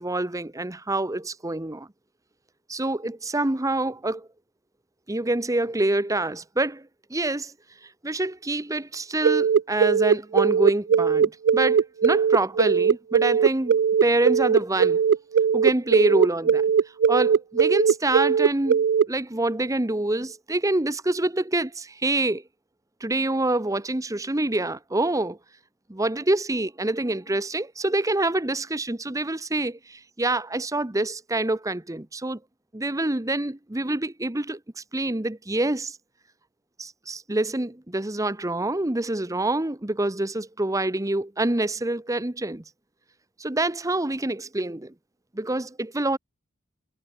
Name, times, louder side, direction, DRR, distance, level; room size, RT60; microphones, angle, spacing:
voice 1, 0.0-1.9 2.7-4.3 5.1-7.5 8.0-15.0 15.5-16.7 17.1-22.4 23.0-25.4 25.9-32.4 32.7-34.6 34.9-36.0 36.8-42.6 43.4-44.9 45.3-46.2, right 2 dB, 15° right, 0.9 m, -26 dB
sound 1, 9.2-19.1, right 7 dB, 50° right, 0.3 m, -19 dB
head